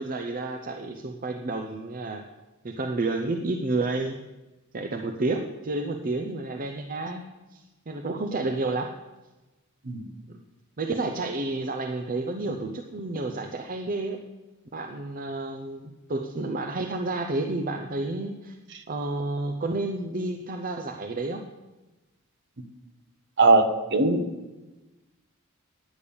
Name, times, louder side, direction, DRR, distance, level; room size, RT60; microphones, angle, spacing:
voice 1, 0.0-2.3 2.6-4.2 4.7-7.2 7.5-8.9 10.3-10.4 10.8-14.2 14.7-18.6 18.9-21.4, right 2 dB, 40° right, 5 dB, 0.7 m, -30 dB
voice 2, 23.4-24.2, right 2 dB, 60° right, 6 dB, 1.1 m, -20 dB
10.0 x 8.6 x 6.9 m, 1.1 s
head